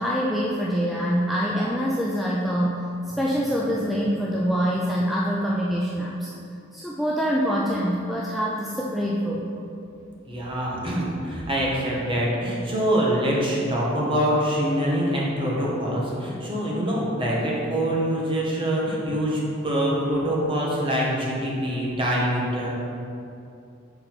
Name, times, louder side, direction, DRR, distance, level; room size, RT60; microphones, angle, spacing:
voice 1, 0.0-2.9 3.2-6.3 6.7-9.5, equal, ahead, -5 dB, 0.3 m, -25 dB
voice 2, 10.3-22.7, equal, 25° right, -4 dB, 1.1 m, -24 dB
5.8 x 4.0 x 4.3 m, 2.6 s
head